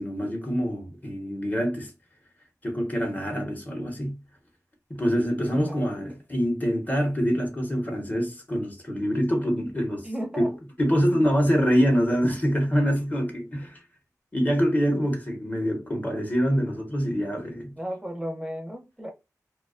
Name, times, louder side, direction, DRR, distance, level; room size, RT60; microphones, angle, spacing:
voice 1, 0.0-1.9 2.6-4.2 4.9-10.1 10.4-10.5 10.8-13.8 14.3-17.7, equal, 25° left, 0.8 m, -25 dB
voice 2, 10.0-10.6 17.8-19.1, equal, 10° right, 0.5 m, -34 dB
2.3 x 2.2 x 2.3 m
wide cardioid pair, 80°, 7 cm